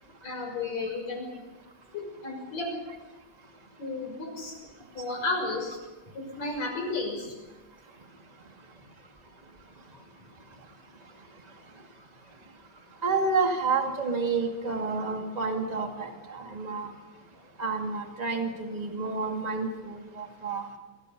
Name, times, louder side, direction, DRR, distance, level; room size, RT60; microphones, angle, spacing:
voice 1, 0.2-1.4 1.9-2.8 3.8-4.5 4.9-5.8 6.1-7.3, left 3 dB, 35° left, 2 dB, 7.1 m, -33 dB
voice 2, 13.0-16.9 17.6-20.6, right 4 dB, 30° right, 2 dB, 0.7 m, -29 dB
27.0 x 24.0 x 5.5 m, 1.2 s
omnidirectional pair, 5.4 m